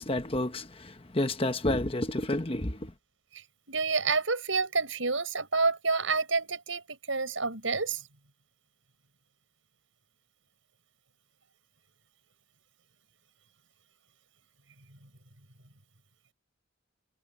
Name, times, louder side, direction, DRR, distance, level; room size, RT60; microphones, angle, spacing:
voice 1, 0.0-2.9, left 1 dB, 30° left, 1.2 m, -30 dB
voice 2, 3.3-8.0, right 4 dB, 80° right, 6.0 m, -29 dB
head